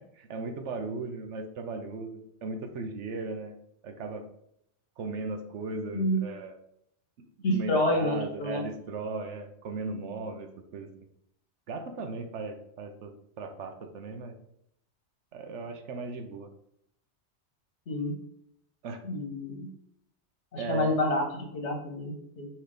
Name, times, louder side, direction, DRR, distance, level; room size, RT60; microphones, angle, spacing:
voice 1, 0.2-3.5 3.8-4.2 5.0-6.6 7.2-10.9 11.7-14.4 15.3-16.5 18.8-19.0 20.6-21.0, right 3 dB, 85° right, 6 dB, 1.1 m, -37 dB
voice 2, 7.4-8.6 17.9-18.1 19.0-19.7 20.5-22.5, left 1 dB, 80° left, 1 dB, 1.4 m, -28 dB
5.8 x 3.2 x 5.0 m, 0.73 s
omnidirectional pair, 1.2 m